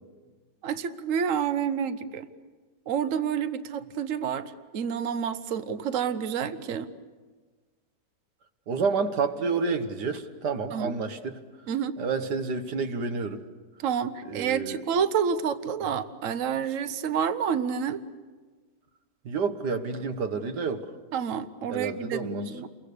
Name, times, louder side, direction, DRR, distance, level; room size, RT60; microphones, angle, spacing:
voice 1, 0.6-2.3 2.9-6.9 10.7-10.9 11.7-12.0 13.8-18.0 21.1-22.7, right 7 dB, 55° right, 12 dB, 1.2 m, -29 dB
voice 2, 8.7-11.4 12.0-13.4 14.3-14.8 19.3-20.9 21.7-22.4, right 4 dB, 70° right, 8 dB, 1.9 m, -29 dB
29.0 x 23.0 x 6.8 m, 1.4 s
omnidirectional pair, 1.9 m